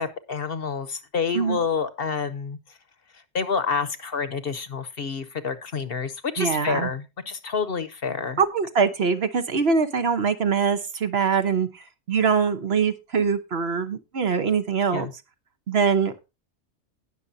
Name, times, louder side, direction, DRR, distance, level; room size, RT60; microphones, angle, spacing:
voice 1, 0.0-2.6 3.3-8.4 14.9-15.1, left 5 dB, 50° left, 12 dB, 1.1 m, -28 dB
voice 2, 6.4-6.9 8.4-15.1 15.7-16.1, right 6 dB, 55° right, 9 dB, 1.2 m, -23 dB
19.0 x 6.5 x 2.7 m, 0.26 s
omnidirectional pair, 1.3 m